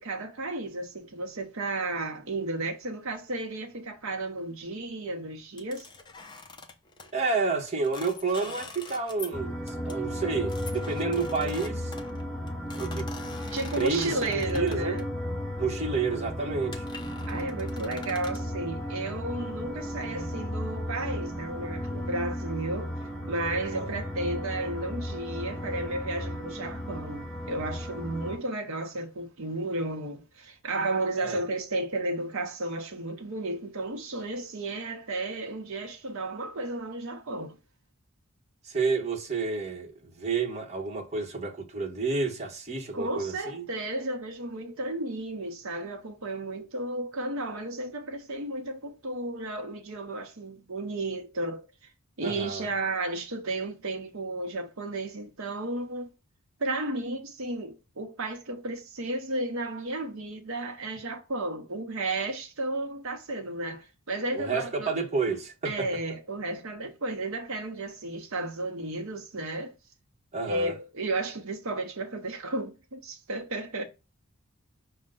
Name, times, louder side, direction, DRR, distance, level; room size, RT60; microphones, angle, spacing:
voice 1, 0.0-5.9 13.5-15.1 17.3-37.6 42.9-51.9 52.2-56.1 56.6-64.9 65.6-69.7 70.4-73.8, right 2 dB, 65° right, 0.8 m, -33 dB
sound 1, 5.6-7.1 7.7-9.4 9.7-9.9 10.5-15.0 15.8-16.0 16.4-16.5 16.7-18.4, left 4 dB, 20° left, 0.5 m, -44 dB
voice 2, 7.1-11.9 12.8-13.1 13.8-15.0 15.6-16.8 23.7-23.9 31.2-31.4 38.6-43.7 52.2-52.7 64.3-65.9 70.3-70.7, right 4 dB, 30° right, 0.9 m, -30 dB
sound 2, 9.3-28.4, equal, ahead, 0.8 m, -35 dB
5.4 x 2.2 x 3.8 m
head